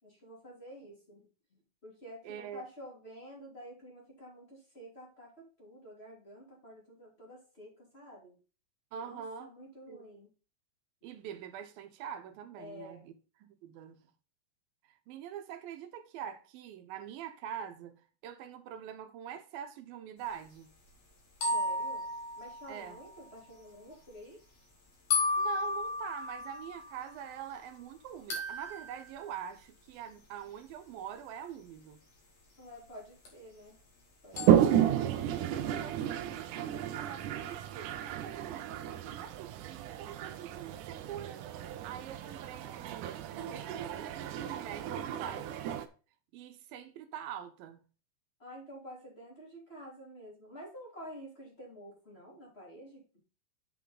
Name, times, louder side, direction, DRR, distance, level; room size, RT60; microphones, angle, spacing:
voice 1, 0.0-8.4 9.0-10.3 12.6-13.1 21.5-22.1 22.4-24.4 32.6-33.8 34.2-35.1 48.4-53.0, equal, 15° left, 3.4 m, -50 dB
voice 2, 2.2-2.6 8.9-9.5 9.9-10.0 11.0-14.1 14.9-20.7 22.7-23.0 25.4-32.0 34.5-35.5 35.8-45.7 46.3-47.8, right 9 dB, 90° right, 2.8 m, -44 dB
sound 1, 21.4-23.3 25.1-27.4 28.3-29.1 33.3-33.4 34.4-34.8, left 2 dB, 50° left, 3.6 m, -34 dB
Toilet flush, 34.3-45.9, right 10 dB, 75° right, 2.2 m, -32 dB
8.3 x 5.9 x 3.9 m
omnidirectional pair, 4.0 m